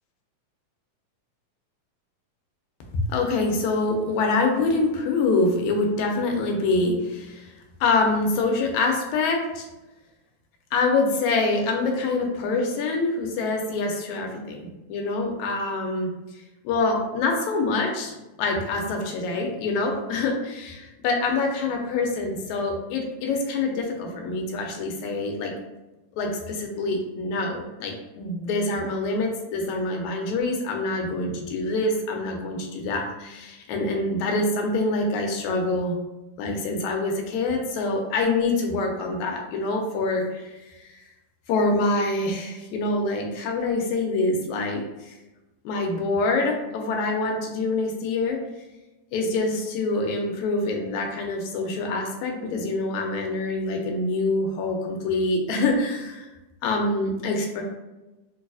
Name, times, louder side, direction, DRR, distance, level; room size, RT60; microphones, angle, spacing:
voice 1, 2.9-7.5 7.8-9.7 10.7-16.1 16.6-25.5 26.2-36.0 36.4-40.6 40.9-41.0 41.5-45.1 45.7-48.4 49.1-56.3 56.6-57.6, left 3 dB, 85° left, 2 dB, 1.9 m, -25 dB
4.5 x 2.3 x 2.4 m, 1.1 s
omnidirectional pair, 3.3 m